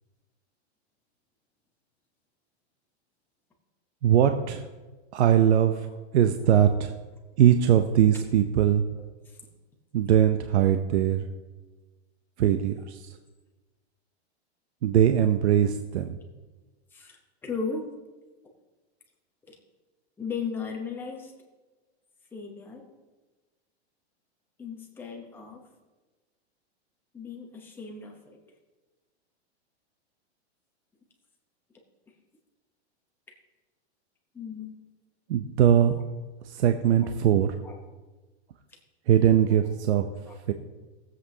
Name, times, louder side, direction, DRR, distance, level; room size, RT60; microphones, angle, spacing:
voice 1, 4.0-4.6 5.1-5.9 6.1-6.9 7.4-8.9 9.9-11.3 12.4-13.1 14.8-16.2 35.3-36.0 36.4-37.5 39.1-40.1 40.5-40.6, right 10 dB, 80° right, 7 dB, 0.7 m, -21 dB
voice 2, 9.0-9.4 10.9-11.0 16.9-17.9 19.5-19.6 20.2-21.3 22.3-22.9 24.6-25.6 27.1-28.4 34.3-34.7 37.0-37.1 37.6-37.8 38.7-38.8 39.5-39.6 40.2-40.4, left 5 dB, 5° left, 0 dB, 0.8 m, -37 dB
18.5 x 7.8 x 2.7 m, 1.2 s
supercardioid pair, 170°, 33 cm